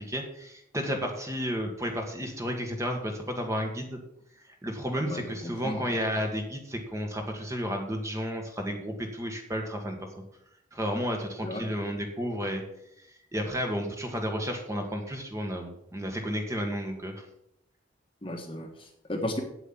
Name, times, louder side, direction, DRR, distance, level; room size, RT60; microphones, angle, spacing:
voice 1, 0.0-4.0 4.6-10.0 10.7-12.6 13.3-17.2, equal, 15° right, 3 dB, 1.7 m, -32 dB
voice 2, 5.0-5.8 11.4-11.7 18.2-19.4, left 1 dB, 25° left, 3 dB, 1.4 m, -34 dB
8.5 x 8.0 x 7.5 m, 0.78 s
head